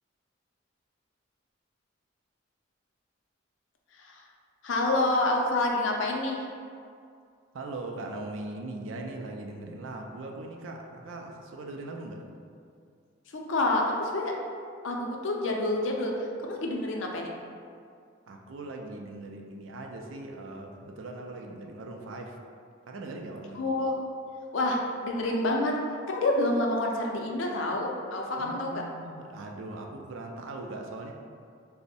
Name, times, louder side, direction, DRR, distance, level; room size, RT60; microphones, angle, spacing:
voice 1, 4.6-6.4 13.3-14.4 14.8-16.1 16.4-17.3 23.6-24.0 24.5-25.8 26.1-28.8, left 2 dB, 75° left, 0 dB, 0.5 m, -28 dB
voice 2, 7.5-12.2 18.3-22.4 22.9-23.6 28.4-31.1, right 2 dB, 80° right, 2 dB, 0.4 m, -40 dB
3.4 x 2.1 x 4.0 m, 2.3 s
head